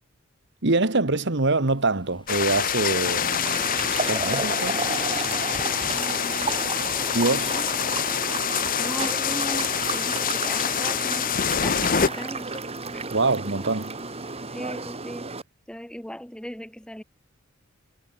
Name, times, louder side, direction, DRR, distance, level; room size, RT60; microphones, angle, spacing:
voice 1, 0.6-3.7 4.0-4.8 7.1-7.6 13.1-13.9, right 3 dB, 60° right, 1.7 m, -24 dB
sound 1, 1.2-15.2, left 2 dB, 25° left, 4.2 m, -48 dB
sound 2, 2.3-12.1, left 8 dB, 45° left, 0.8 m, -26 dB
sound 3, 3.1-15.4, right 4 dB, 30° right, 1.9 m, -32 dB
voice 2, 5.9-6.6 7.5-7.7 8.8-11.3 11.6-12.6 12.9-13.1 14.5-15.3 15.7-17.0, equal, 5° left, 1.8 m, -38 dB
head